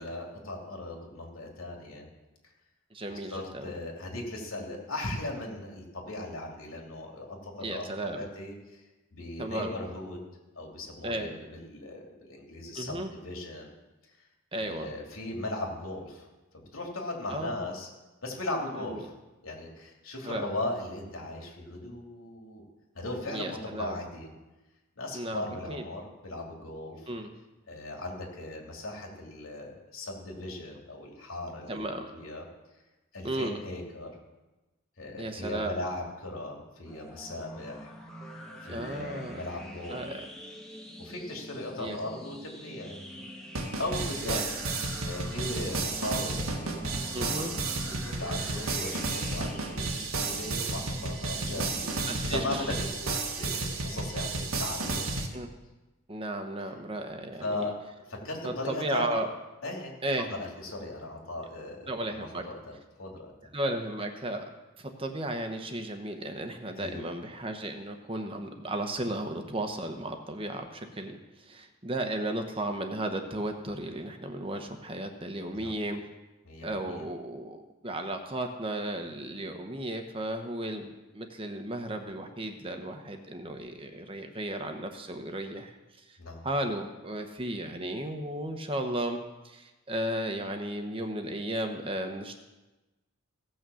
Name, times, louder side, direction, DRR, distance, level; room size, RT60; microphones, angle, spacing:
voice 1, 0.0-2.1 3.1-8.8 9.1-10.3 10.6-13.7 14.6-16.3 16.5-17.9 18.2-19.1 19.4-22.6 22.9-24.3 25.0-27.1 27.7-31.9 32.1-32.5 33.1-34.1 35.0-37.9 38.6-40.1 41.0-43.2 43.8-44.4 45.0-46.8 47.1-47.6 48.0-55.0 57.4-59.2 59.6-62.7 63.0-63.3 66.8-67.0 75.5-75.8 76.4-77.1 86.2-86.5, left 2 dB, 80° left, 0 dB, 2.9 m, -38 dB
voice 2, 2.9-3.7 7.6-8.3 9.4-9.7 11.0-11.4 12.7-13.1 14.5-14.9 17.3-17.5 18.9-19.0 20.2-20.4 23.3-24.0 25.1-25.9 27.1-27.3 31.7-32.1 33.2-33.6 35.2-35.8 38.7-39.4 39.9-40.2 41.8-42.0 44.2-44.7 47.1-47.5 51.5-51.7 52.1-52.7 55.3-55.5 56.1-57.7 58.4-59.3 60.0-60.3 61.9-62.4 63.5-64.5 64.8-76.0 76.6-86.2 86.4-92.4, right 1 dB, 25° right, 5 dB, 1.0 m, -34 dB
sound 1, 36.9-52.8, equal, 5° left, 1.5 m, -45 dB
sound 2, 43.6-55.3, right 3 dB, 90° right, 1.7 m, -32 dB
16.5 x 6.3 x 7.0 m, 1.1 s
head